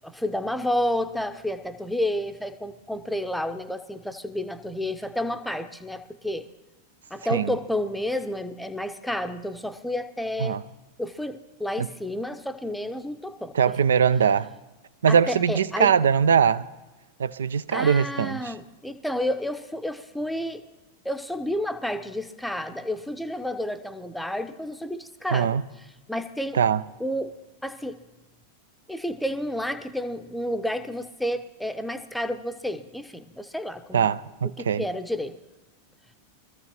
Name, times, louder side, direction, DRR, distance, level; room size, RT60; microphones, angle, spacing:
voice 1, 0.0-6.5 7.1-10.6 11.0-13.6 15.1-15.9 17.7-20.6 21.0-25.6 26.1-26.6 27.0-27.3 27.6-28.0 28.9-34.1 34.4-35.4, left 1 dB, ahead, 0.7 m, -30 dB
voice 2, 13.5-14.5 15.0-16.7 17.2-18.5 25.3-25.6 26.5-26.8 33.9-34.9, right 7 dB, 65° right, 0.4 m, -21 dB
23.5 x 14.0 x 3.0 m
figure-of-eight pair, 90°, 0 cm